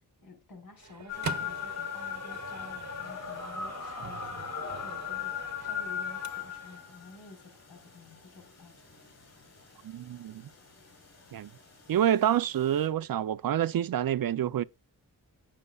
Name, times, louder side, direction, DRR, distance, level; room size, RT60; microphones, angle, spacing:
voice 1, 0.2-8.9, left 3 dB, 80° left, 4.6 m, -51 dB
Microwave oven, 0.8-6.8, right 5 dB, 50° right, 1.1 m, -43 dB
sound 1, 1.1-12.8, left 7 dB, 45° left, 5.9 m, -40 dB
voice 2, 9.8-10.4 11.3-11.5 11.9-14.6, right 10 dB, 70° right, 0.6 m, -27 dB
17.5 x 6.7 x 2.3 m
wide cardioid pair, 130°, 35 cm